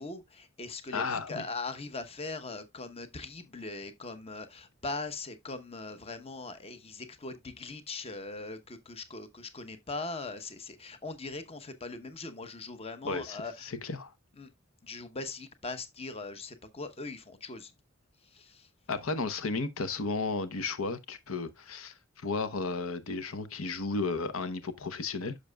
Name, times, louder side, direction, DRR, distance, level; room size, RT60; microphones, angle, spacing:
voice 1, 0.0-13.7 14.4-14.5 14.8-17.7 18.3-18.7, left 3 dB, 30° left, 0.9 m, -40 dB
voice 2, 0.9-1.4 13.0-14.1 18.9-25.4, left 3 dB, 90° left, 0.8 m, -34 dB
10.0 x 6.6 x 2.2 m
head